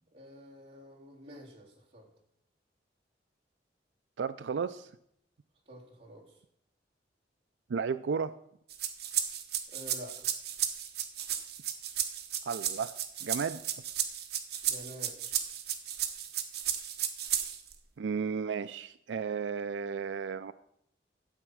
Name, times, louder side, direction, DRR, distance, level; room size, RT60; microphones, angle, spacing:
voice 1, 0.1-2.1 5.7-6.2 9.7-10.3 14.6-15.2, equal, 35° right, -4 dB, 3.7 m, -48 dB
voice 2, 4.2-4.9 7.7-8.3 12.5-12.9 13.2-13.6 18.0-20.5, right 6 dB, 85° right, 13 dB, 0.4 m, -33 dB
sound 1, 8.7-17.7, right 10 dB, 60° right, 1.3 m, -34 dB
12.5 x 8.3 x 6.2 m, 0.71 s
head